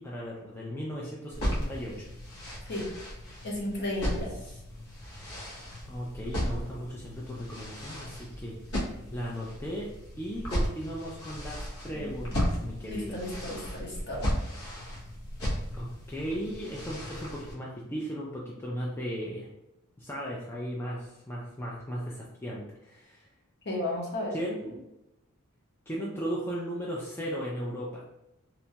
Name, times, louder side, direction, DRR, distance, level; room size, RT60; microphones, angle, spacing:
voice 1, 0.0-2.0 4.4-4.6 5.8-8.6 9.1-9.9 10.2-13.2 15.7-19.5 20.0-23.3 24.3-24.8 25.9-28.0, equal, 10° left, -4 dB, 0.3 m, -36 dB
sound 1, 1.3-17.5, equal, 80° left, 0.9 m, -35 dB
voice 2, 3.4-4.3 11.9-12.1 12.9-14.3 23.6-24.3, left 1 dB, 50° left, -3 dB, 0.9 m, -33 dB
2.9 x 2.2 x 2.7 m, 0.90 s
head